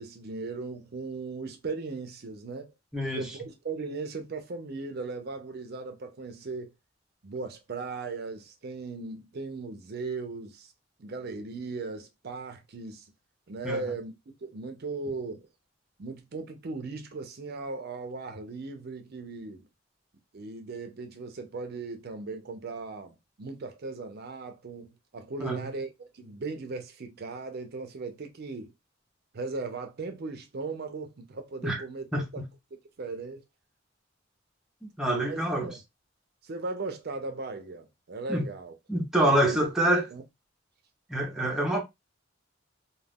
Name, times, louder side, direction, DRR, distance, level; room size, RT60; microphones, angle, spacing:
voice 1, 0.0-2.7 3.1-6.7 7.2-10.7 11.0-13.1 13.5-15.5 16.0-19.7 20.3-28.7 29.3-32.1 32.3-32.4 33.0-33.4 35.2-35.8 36.4-38.8 39.1-39.6 40.1-40.2, right 3 dB, 55° right, 0.5 m, -37 dB
voice 2, 2.9-3.3 13.6-13.8 25.4-25.7 31.6-31.8 32.1-32.5 34.8-35.7 38.3-38.5 38.9-40.1 41.1-41.8, right 1 dB, 5° right, 0.6 m, -26 dB
2.3 x 2.3 x 3.4 m
head